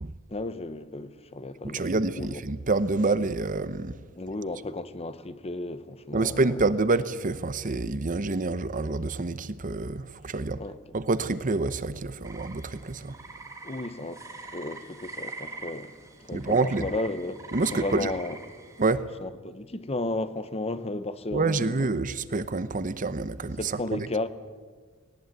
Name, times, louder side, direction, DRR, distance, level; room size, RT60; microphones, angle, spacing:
voice 1, 0.3-2.4 4.1-6.6 10.6-10.8 13.6-14.2 14.5-15.9 16.2-17.4 17.7-18.4 19.2-21.9 23.6-24.3, left 2 dB, 25° left, 0.9 m, -34 dB
voice 2, 1.7-3.9 6.1-10.6 10.9-13.2 16.3-16.9 17.5-18.1 18.8-19.1 21.3-24.1, right 3 dB, 35° right, 0.8 m, -27 dB
sound 1, 12.2-18.9, right 3 dB, 15° right, 2.3 m, -43 dB
18.5 x 18.5 x 9.3 m
head